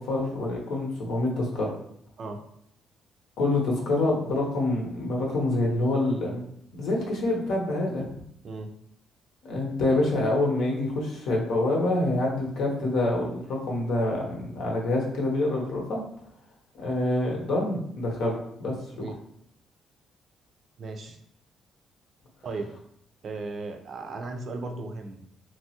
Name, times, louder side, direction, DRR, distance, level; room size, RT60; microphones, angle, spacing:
voice 1, 0.0-1.8 3.4-6.4 6.7-8.0 9.4-16.0 16.7-18.7, left 2 dB, 80° left, -1 dB, 0.8 m, -26 dB
voice 2, 20.8-21.2 22.4-22.7 23.2-25.3, right 3 dB, 55° right, 5 dB, 0.4 m, -36 dB
2.9 x 2.3 x 2.8 m, 0.69 s
cardioid pair, 90°, 0 cm